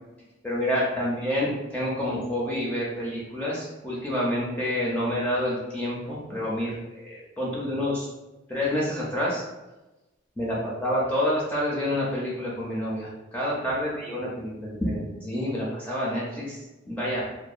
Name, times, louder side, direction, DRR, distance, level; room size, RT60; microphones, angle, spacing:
voice 1, 0.4-8.1 8.5-9.4 10.4-16.6 16.9-17.2, left 1 dB, 10° left, -6 dB, 0.4 m, -28 dB
2.7 x 2.2 x 2.4 m, 1.0 s
head